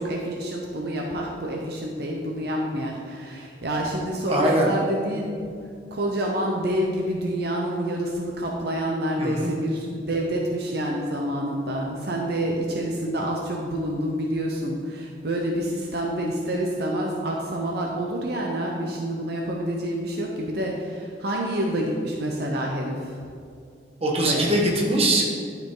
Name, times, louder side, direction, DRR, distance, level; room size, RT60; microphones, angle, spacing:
voice 1, 0.0-5.4 5.9-23.2 24.2-24.5, right 1 dB, 65° right, -1 dB, 0.8 m, -28 dB
voice 2, 4.3-4.7 9.2-9.5 24.0-25.4, right 1 dB, 35° right, -2 dB, 1.4 m, -22 dB
12.0 x 4.9 x 3.9 m, 2.3 s
head